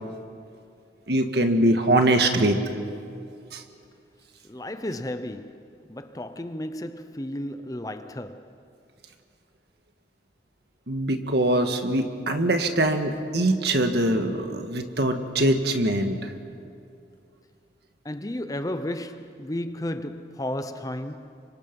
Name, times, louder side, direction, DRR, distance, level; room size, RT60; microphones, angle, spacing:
voice 1, 1.1-2.6 3.5-3.6 10.9-16.2, right 1 dB, 65° right, 1.7 m, -23 dB
voice 2, 4.5-8.5 18.0-21.4, left 1 dB, 20° left, 0.6 m, -33 dB
29.5 x 25.0 x 5.4 m
head